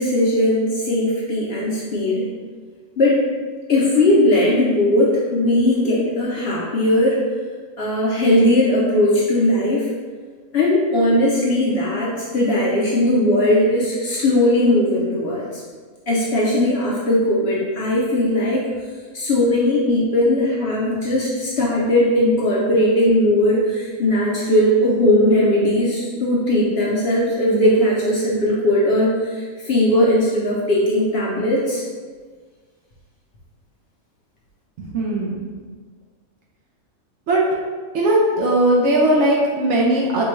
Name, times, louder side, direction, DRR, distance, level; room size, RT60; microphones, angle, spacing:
voice 1, 0.0-2.2 3.0-3.2 3.7-7.2 7.8-9.9 10.5-15.6 16.1-18.7 19.1-31.8, left 1 dB, 60° left, -5 dB, 0.7 m, -18 dB
voice 2, 34.8-35.4 37.3-37.4 37.9-40.2, right 1 dB, 65° right, -3 dB, 0.8 m, -18 dB
4.3 x 2.2 x 3.1 m, 1.5 s
omnidirectional pair, 1.5 m